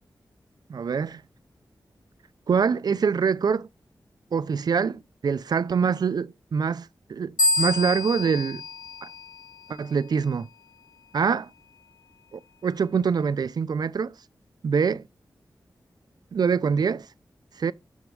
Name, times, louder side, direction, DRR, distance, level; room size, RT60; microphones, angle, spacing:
voice 1, 0.7-1.2 2.5-3.7 4.3-8.6 9.0-9.1 9.7-10.5 11.1-11.5 12.3-14.1 14.6-15.1 16.3-17.1 17.6-17.7, right 6 dB, 60° right, 0.4 m, -25 dB
sound 1, 7.4-9.9, left 2 dB, 55° left, 0.7 m, -27 dB
7.2 x 5.2 x 4.5 m
wide cardioid pair, 140°, 8 cm